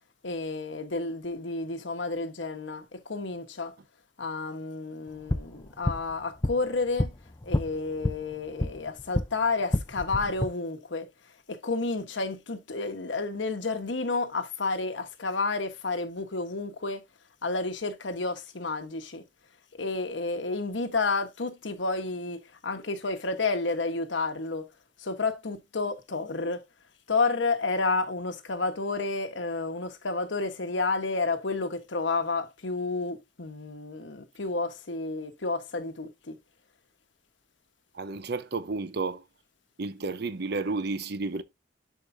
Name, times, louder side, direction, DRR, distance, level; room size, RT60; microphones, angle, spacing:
voice 1, 0.2-3.7 4.2-7.1 7.4-11.1 11.5-17.0 17.4-19.2 19.8-24.7 25.0-26.6 27.1-36.4, left 3 dB, 85° left, 1.2 m, -30 dB
sound 1, 5.1-9.3 9.6-10.5, left 1 dB, 20° left, 0.5 m, -30 dB
voice 2, 37.9-39.2 39.8-41.4, right 3 dB, 60° right, 0.8 m, -31 dB
11.0 x 4.8 x 2.6 m
head